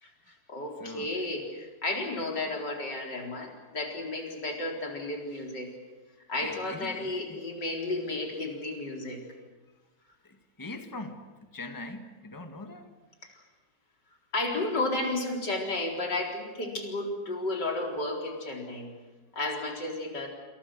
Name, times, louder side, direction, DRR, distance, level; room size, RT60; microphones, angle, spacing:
voice 1, 0.0-5.7 6.3-9.2 13.3-13.4 14.3-18.9 19.4-20.3, left 2 dB, 85° left, 1 dB, 4.9 m, -33 dB
voice 2, 0.8-1.2 6.4-7.4 10.2-12.9, left 2 dB, 10° left, 6 dB, 1.8 m, -42 dB
28.5 x 27.0 x 6.4 m, 1.2 s
omnidirectional pair, 1.8 m